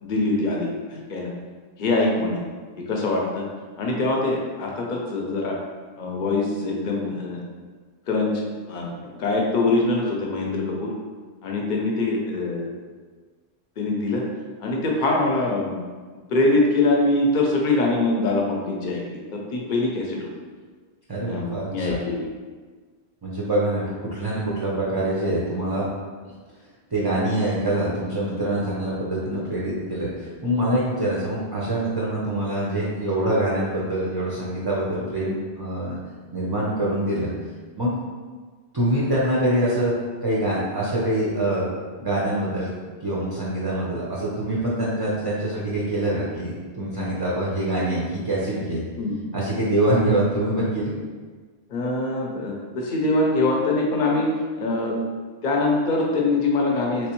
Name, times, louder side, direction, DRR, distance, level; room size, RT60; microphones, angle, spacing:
voice 1, 0.0-1.3 1.8-2.4 2.8-3.5 3.8-5.6 6.0-7.4 8.1-10.9 11.4-12.7 13.8-14.2 14.6-15.8 16.3-20.3 21.2-22.3 49.0-49.2 51.7-54.3 54.6-55.0 55.4-57.1, left 2 dB, 50° left, -1 dB, 0.7 m, -23 dB
voice 2, 21.1-22.0 23.2-25.9 26.9-36.0 36.3-37.3 37.8-37.9 38.7-39.9 40.2-42.7 43.0-48.8 49.3-50.9, right 1 dB, 30° right, -6 dB, 0.5 m, -25 dB
3.3 x 3.2 x 3.0 m, 1.5 s
omnidirectional pair, 1.1 m